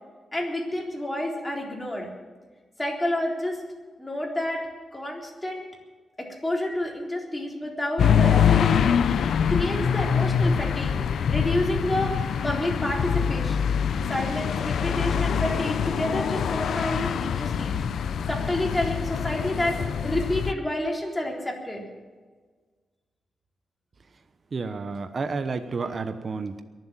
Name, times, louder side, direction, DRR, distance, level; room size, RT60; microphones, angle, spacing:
voice 1, 0.3-2.1 2.8-3.6 4.0-4.7 4.9-5.6 6.2-9.1 9.5-13.8 14.1-17.8 18.3-19.8 20.0-21.9, left 1 dB, 15° left, -1 dB, 3.8 m, -29 dB
sound 1, 8.0-20.5, left 7 dB, 80° left, 0.6 m, -24 dB
voice 2, 24.5-26.6, right 4 dB, 45° right, 9 dB, 1.0 m, -30 dB
23.0 x 7.8 x 7.5 m, 1.4 s
cardioid pair, 105°, 0 cm